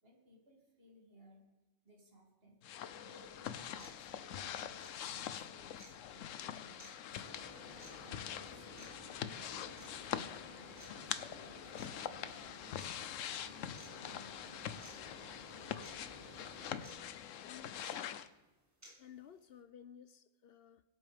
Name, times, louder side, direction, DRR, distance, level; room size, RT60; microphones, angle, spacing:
voice 1, 0.0-1.5 1.8-2.6 3.0-7.3 8.0-8.9 9.3-12.9 13.4-15.1, equal, 50° right, 2.8 m, -62 dB
sound 1, 2.6-18.3, left 9 dB, 85° left, 1.0 m, -44 dB
sound 2, 3.1-3.2 3.8-4.0 4.8-4.9 5.8-5.9 6.8-6.9 7.8-7.9 8.8-8.9 9.8-9.9 10.8-10.9 11.8-11.9 12.8-12.9 13.8-13.9 14.8-14.9 15.8-15.9 16.8-16.9 17.8-17.9 18.8-18.9, equal, 10° right, 2.1 m, -55 dB
sound 3, 7.2-17.0, equal, 35° left, 3.6 m, -56 dB
voice 2, 17.4-17.9 18.8-20.8, left 9 dB, 65° left, 0.7 m, -56 dB
22.0 x 8.2 x 3.4 m
omnidirectional pair, 1.3 m